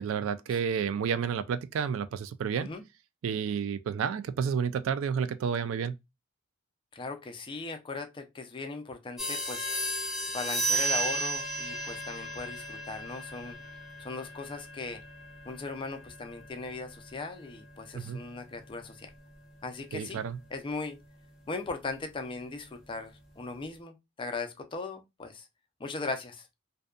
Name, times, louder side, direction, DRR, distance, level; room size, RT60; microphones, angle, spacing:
voice 1, 0.0-2.7 3.2-6.0 17.9-18.2 19.9-20.4, right 7 dB, 80° right, 0.3 m, -30 dB
voice 2, 6.9-9.8 10.3-13.6 14.0-15.0 15.5-19.1 19.6-20.2 20.5-21.0 21.5-25.5 25.8-26.5, left 3 dB, 25° left, 0.4 m, -38 dB
sound 1, 9.2-19.4, right 2 dB, ahead, 0.8 m, -35 dB
2.6 x 2.2 x 2.3 m
head